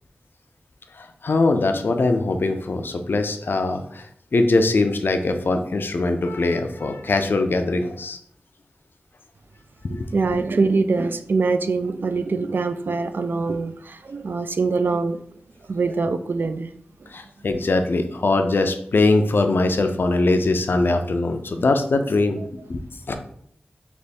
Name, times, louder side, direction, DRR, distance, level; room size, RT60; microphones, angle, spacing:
voice 1, 0.9-8.2 9.9-10.4 17.1-22.8 23.1-23.2, left 2 dB, 70° left, 6 dB, 0.5 m, -22 dB
voice 2, 10.1-15.2 15.7-16.7 17.0-17.1, right 4 dB, 70° right, 10 dB, 0.3 m, -23 dB
3.4 x 3.0 x 4.2 m, 0.65 s
wide cardioid pair, 75°, 4 cm